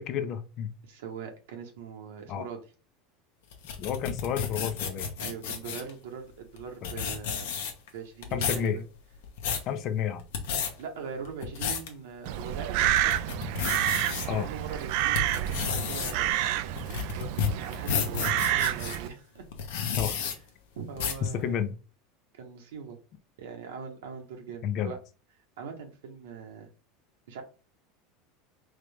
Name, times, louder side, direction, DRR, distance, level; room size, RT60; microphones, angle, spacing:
voice 1, 0.0-0.7 2.3-2.5 3.8-5.1 6.8-6.9 8.3-8.8 9.7-10.2 14.3-14.5 20.0-20.3 21.4-21.7 24.6-24.9, left 8 dB, 50° left, 8 dB, 0.7 m, -31 dB
voice 2, 0.8-2.6 5.2-7.5 7.9-8.8 10.8-13.2 14.3-16.7 17.1-19.5 20.1-20.4 20.8-21.6 22.3-23.0 23.4-25.0 25.6-26.7 27.3-27.4, right 6 dB, 85° right, 3 dB, 1.1 m, -41 dB
sound 1, 3.5-5.9 6.6-6.7 6.8-7.9 8.2-8.7 9.1-9.7 10.2-10.7 11.2-11.9 12.4-12.5 13.0-14.3 14.8-19.0 19.5-20.3 21.0-21.3, left 7 dB, 80° left, 0.9 m, -31 dB
Crow, 12.3-19.1, right 13 dB, 65° right, 0.4 m, -29 dB
3.7 x 3.3 x 3.4 m, 0.34 s
supercardioid pair, 110°, 0 cm